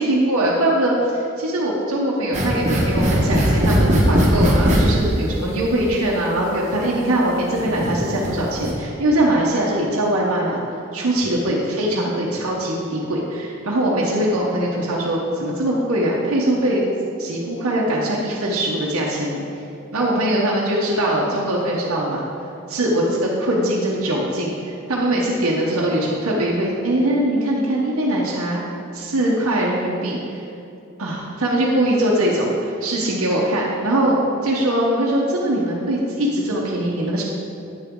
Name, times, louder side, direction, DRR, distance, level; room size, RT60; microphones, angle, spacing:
voice 1, 0.0-10.6 10.9-16.8 17.2-19.4 19.9-22.2 22.7-28.6 28.9-30.4 31.0-37.2, right 1 dB, 80° right, -4 dB, 1.0 m, -21 dB
sound 1, 2.3-4.8 5.9-6.0 6.7-6.8 7.6-8.3 8.5-8.7, equal, 35° right, 1.4 m, -19 dB
8.8 x 6.9 x 3.7 m, 2.6 s
head